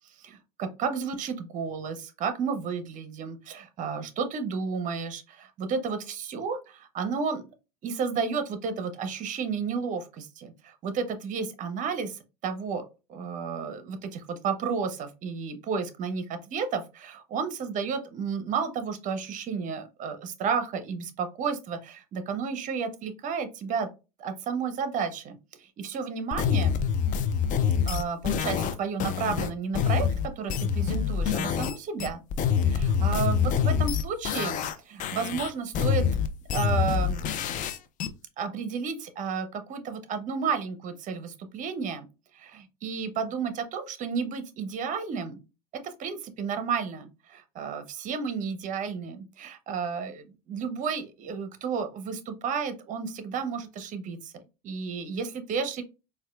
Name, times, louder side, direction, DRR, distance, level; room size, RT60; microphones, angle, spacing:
voice 1, 0.2-7.4 7.8-23.9 24.2-26.8 27.9-32.2 32.6-36.1 36.5-37.7 38.4-42.1 42.3-45.4 45.7-54.3 54.6-55.8, right 5 dB, 40° right, 9 dB, 0.7 m, -32 dB
sound 1, 26.3-31.7 32.0-34.7 35.0-38.1, left 7 dB, 40° left, 0.4 m, -26 dB
4.1 x 2.2 x 2.3 m, 0.29 s
hypercardioid pair, 90°, 19 cm